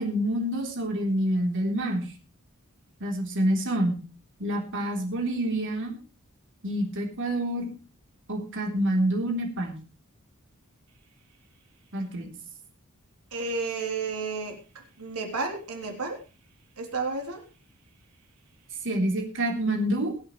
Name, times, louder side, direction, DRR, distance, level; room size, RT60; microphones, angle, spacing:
voice 1, 0.0-2.1 3.0-4.0 4.4-6.0 6.6-7.7 8.3-9.8 11.9-12.3 18.8-20.1, right 1 dB, 60° right, 2 dB, 3.6 m, -27 dB
voice 2, 13.3-14.6 15.0-16.2 16.8-17.4, right 4 dB, 85° right, 3 dB, 3.6 m, -31 dB
22.5 x 8.7 x 3.3 m, 0.35 s
head